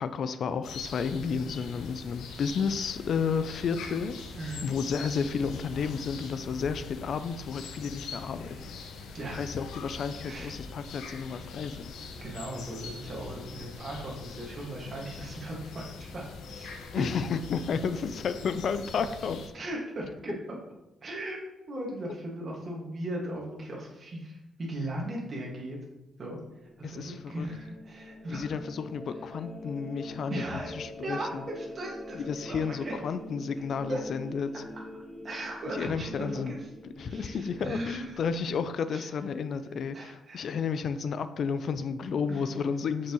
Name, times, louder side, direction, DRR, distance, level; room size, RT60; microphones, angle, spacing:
voice 1, 0.0-4.2 4.6-8.8 9.3-11.9 16.9-19.4 26.8-27.5 28.3-31.4 32.1-34.6 35.7-36.5 36.8-43.1, left 6 dB, 60° left, 11 dB, 0.4 m, -32 dB
sound 1, 0.6-19.5, left 4 dB, 90° left, 0.7 m, -43 dB
voice 2, 12.2-15.8 16.1-16.7 17.0-17.1 19.5-20.6 21.0-21.4 21.7-25.8 26.2-26.4 26.8-28.5 30.3-30.7 31.0-32.9 33.9-34.0 35.2-36.7 37.1-38.1 38.9-39.0 39.9-40.5 42.3-42.4, right 1 dB, 40° right, -2 dB, 1.8 m, -37 dB
sound 2, 26.6-38.6, left 1 dB, 15° left, 2.2 m, -44 dB
6.8 x 5.8 x 3.1 m, 0.94 s
cardioid pair, 100°, 0 cm